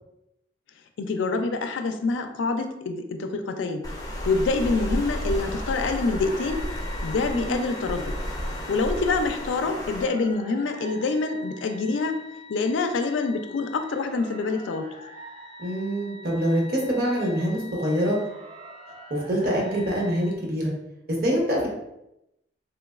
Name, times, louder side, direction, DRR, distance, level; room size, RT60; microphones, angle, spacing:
voice 1, 1.0-3.9 4.2-6.7 7.0-8.1 8.7-12.2 12.5-14.9, left 3 dB, 85° left, 7 dB, 0.4 m, -26 dB
Water, 3.8-10.0, equal, 20° left, 0.5 m, -32 dB
sound 1, 5.1-20.3, left 1 dB, 35° right, 0.4 m, -45 dB
voice 2, 15.6-18.2 19.1-20.7 21.1-21.7, equal, 50° right, -2 dB, 0.8 m, -25 dB
3.2 x 3.0 x 2.3 m, 0.86 s
head